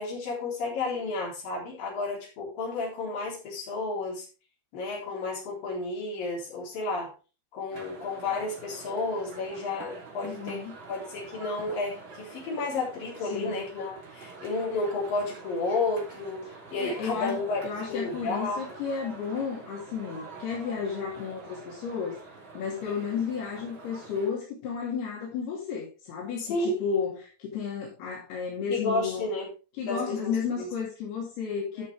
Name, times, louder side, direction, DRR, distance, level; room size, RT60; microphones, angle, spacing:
voice 1, 0.0-4.3 4.7-7.1 7.5-10.6 10.9-18.7 26.4-26.8 28.7-29.5 29.9-30.7 31.8-31.9, left 3 dB, 60° left, -3 dB, 5.4 m, -32 dB
sound 1, 7.7-24.3, right 3 dB, 30° right, 3.4 m, -46 dB
voice 2, 10.2-10.7 13.3-13.6 16.8-17.4 17.6-22.2 22.5-29.3 29.8-31.9, left 6 dB, 80° left, -3 dB, 4.6 m, -32 dB
13.5 x 6.6 x 3.4 m, 0.32 s
omnidirectional pair, 4.5 m